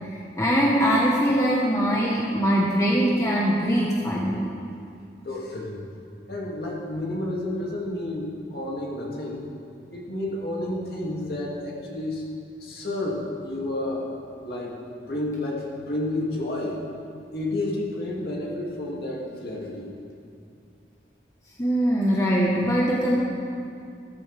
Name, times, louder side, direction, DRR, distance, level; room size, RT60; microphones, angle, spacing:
voice 1, 0.4-4.4 21.6-23.2, equal, 15° left, -4 dB, 1.1 m, -22 dB
voice 2, 5.2-5.9 6.3-9.4 9.9-12.2 12.6-14.1 14.4-16.8 17.3-19.9, left 1 dB, 55° left, -3 dB, 2.4 m, -30 dB
15.0 x 14.0 x 3.4 m, 2.5 s
head